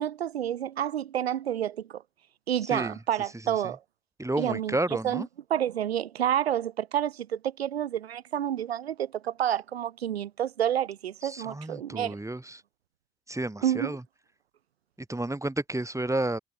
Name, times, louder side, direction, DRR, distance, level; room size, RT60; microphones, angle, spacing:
voice 1, 0.0-2.0 2.5-3.8 4.4-4.8 5.0-5.2 5.5-12.2 13.6-14.0, right 10 dB, 80° right, 4.2 m, -29 dB
voice 2, 2.6-3.0 3.5-3.6 4.2-5.3 11.2-12.6 13.3-14.0 15.1-16.4, right 2 dB, 10° right, 6.1 m, -31 dB
figure-of-eight pair, 50°, 31 cm